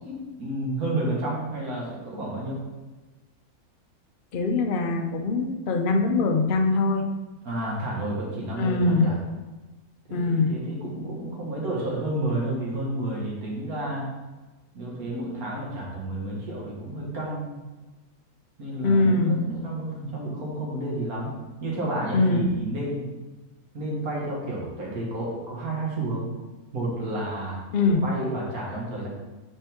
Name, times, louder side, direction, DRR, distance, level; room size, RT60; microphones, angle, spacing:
voice 1, 0.0-2.6 7.4-9.2 10.1-14.1 14.7-17.6 18.6-21.3 21.6-23.0 23.7-26.3 26.7-27.6 27.9-29.1, right 1 dB, 75° right, -3 dB, 1.9 m, -31 dB
voice 2, 4.3-7.0 8.6-9.1 10.1-10.6 18.8-19.4 22.1-22.5 27.7-28.0, left 3 dB, 60° left, 4 dB, 0.5 m, -22 dB
5.4 x 5.3 x 3.6 m, 1.2 s
omnidirectional pair, 1.6 m